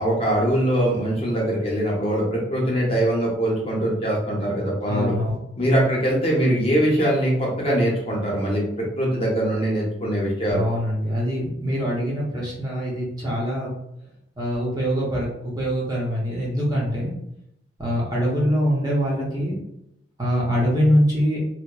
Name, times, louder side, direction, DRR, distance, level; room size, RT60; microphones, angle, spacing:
voice 1, 0.0-5.1 5.6-10.6, right 1 dB, 30° left, -4 dB, 0.6 m, -22 dB
voice 2, 4.8-5.4 10.5-13.7 14.4-17.1 17.8-19.6 20.2-21.4, equal, 20° right, -5 dB, 0.6 m, -23 dB
2.8 x 2.0 x 2.2 m, 0.79 s
head